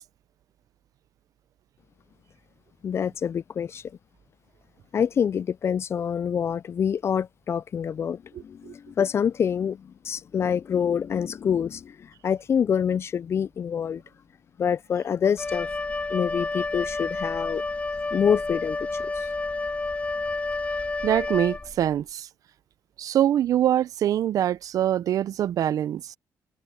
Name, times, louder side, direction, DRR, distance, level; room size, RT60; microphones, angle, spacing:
voice 1, 2.8-3.8 4.9-9.8 10.1-11.9 12.2-14.0 14.6-15.7 16.1-17.6 18.1-18.8, left 7 dB, 40° left, 0.3 m, -26 dB
Wind instrument woodwind instrument, 15.4-21.9, left 3 dB, 20° left, 2.3 m, -30 dB
voice 2, 21.0-22.3 23.0-26.0, right 11 dB, 65° right, 0.6 m, -24 dB
cardioid pair, 85°, 7 cm